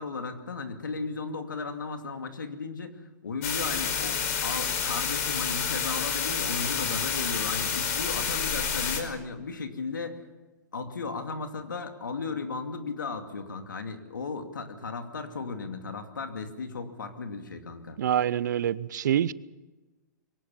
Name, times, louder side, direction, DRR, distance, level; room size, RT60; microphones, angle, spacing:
voice 1, 0.0-10.2 10.7-18.0, left 4 dB, 90° left, 2.5 m, -35 dB
sound 1, 3.4-9.0, left 7 dB, 55° left, 4.8 m, -29 dB
voice 2, 18.0-19.3, right 10 dB, 70° right, 0.8 m, -26 dB
23.0 x 18.5 x 7.0 m
hypercardioid pair, 120°, 10 cm